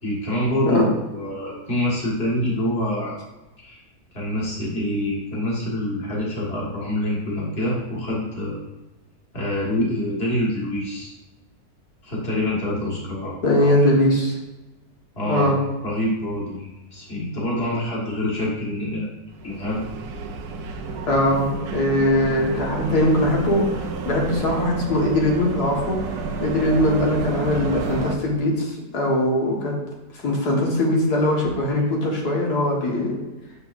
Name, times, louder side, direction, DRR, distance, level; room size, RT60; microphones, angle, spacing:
voice 1, 0.0-3.2 3.6-3.8 4.1-8.6 9.3-11.2 12.0-13.7 15.2-15.6 15.8-19.1 19.4-19.8, left 1 dB, 40° left, -4 dB, 2.0 m, -26 dB
voice 2, 13.4-14.4 15.3-15.6 21.1-21.5 21.7-26.0 26.4-29.7 30.2-33.2, left 1 dB, 75° left, -2 dB, 2.1 m, -21 dB
sound 1, 19.3-28.2, right 4 dB, 70° right, 1.2 m, -30 dB
7.0 x 6.7 x 2.6 m, 1.0 s
omnidirectional pair, 1.7 m